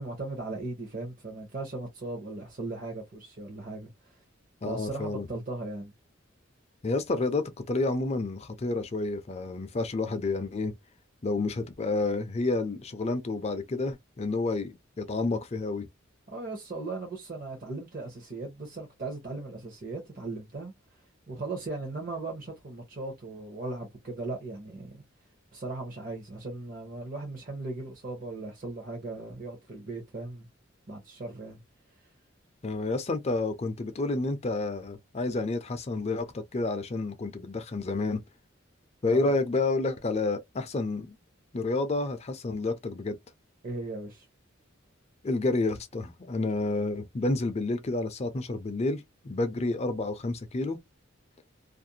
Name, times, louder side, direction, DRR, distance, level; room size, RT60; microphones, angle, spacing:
voice 1, 0.0-4.2 4.6-5.9 16.3-20.7 21.3-25.0 25.5-30.5 30.9-31.6 39.1-39.3 43.6-44.3, right 2 dB, 45° right, 0.8 m, -38 dB
voice 2, 4.6-5.3 6.8-10.7 11.2-15.9 32.6-38.2 39.0-41.2 41.5-43.1 45.2-50.8, left 3 dB, 30° left, 0.5 m, -30 dB
2.5 x 2.1 x 2.7 m
head